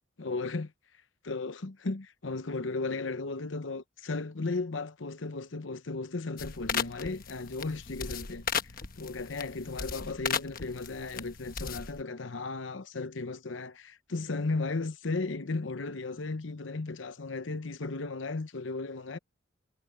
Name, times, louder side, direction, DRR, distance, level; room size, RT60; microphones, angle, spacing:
voice 1, 0.2-0.7 1.2-8.4 9.0-19.2, left 3 dB, 75° left, 0.9 m, -35 dB
sound 1, 6.4-12.0, left 7 dB, 45° left, 1.1 m, -36 dB
head